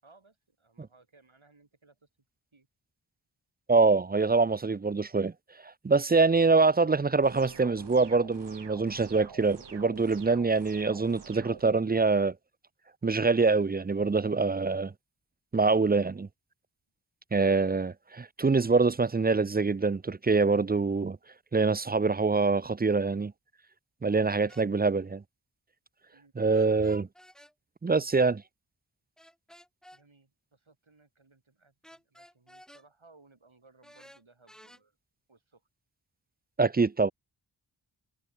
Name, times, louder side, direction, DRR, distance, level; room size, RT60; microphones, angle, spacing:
voice 1, 0.0-2.1 2.5-2.7 26.1-26.3 29.9-35.0 35.3-35.6, right 3 dB, 75° right, 6.9 m, -62 dB
voice 2, 3.7-5.3 5.6-12.3 13.0-14.9 15.5-16.3 17.3-21.2 21.5-23.3 24.0-25.2 26.4-27.1 27.8-28.4 36.6-37.1, right 4 dB, 20° right, 0.3 m, -25 dB
sound 1, 7.2-11.6, right 6 dB, 60° right, 1.0 m, -48 dB
sound 2, 24.5-24.7 26.5-27.5 29.2-30.0 31.8-32.9 33.8-34.8, equal, ahead, 1.0 m, -54 dB
wide cardioid pair, 55°, 48 cm